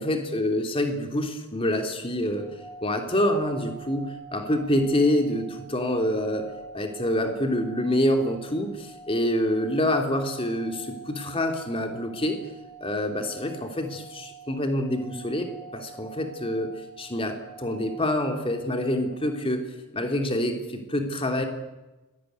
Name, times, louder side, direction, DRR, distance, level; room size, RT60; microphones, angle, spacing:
voice 1, 0.0-2.5 2.8-6.5 6.7-12.4 12.8-19.6 19.9-21.4, left 1 dB, 25° left, 4 dB, 3.2 m, -26 dB
sound 1, 2.3-19.5, right 4 dB, ahead, 4.7 m, -46 dB
24.5 x 19.0 x 9.5 m, 1.1 s
head